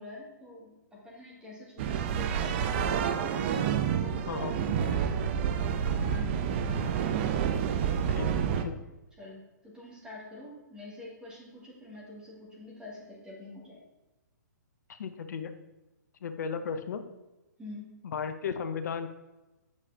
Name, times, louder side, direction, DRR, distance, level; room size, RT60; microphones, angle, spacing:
voice 1, 0.0-7.2 9.2-13.8 17.6-18.0, left 2 dB, 10° right, -5 dB, 2.1 m, -47 dB
sound 1, 1.8-8.6, right 7 dB, 40° right, 0.5 m, -29 dB
voice 2, 4.3-4.6 8.1-8.3 8.6-8.8 14.9-15.5 16.2-17.0 18.0-19.1, left 6 dB, 65° left, 9 dB, 0.6 m, -35 dB
8.0 x 4.8 x 2.7 m, 1.0 s
hypercardioid pair, 130°, 10 cm